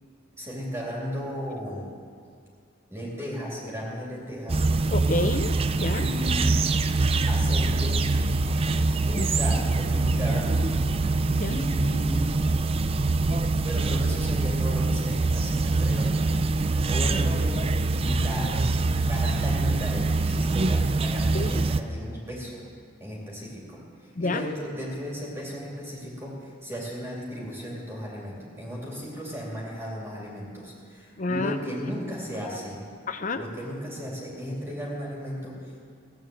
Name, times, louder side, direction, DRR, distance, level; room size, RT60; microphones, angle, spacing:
voice 1, 0.4-1.9 2.9-4.7 5.9-6.6 7.3-8.1 9.0-10.5 11.5-12.2 13.6-17.6 18.0-18.6 19.1-22.6 23.0-32.9 33.3-35.8, equal, 10° right, -4 dB, 2.8 m, -35 dB
sound 1, 4.5-21.8, right 3 dB, 30° right, 0.5 m, -24 dB
voice 2, 4.9-6.1 9.1-9.3 11.3-11.6 21.3-21.6 24.2-24.5 31.2-31.6 33.1-33.5, left 2 dB, 40° left, 10 dB, 0.6 m, -29 dB
16.5 x 8.7 x 7.8 m, 2.2 s
head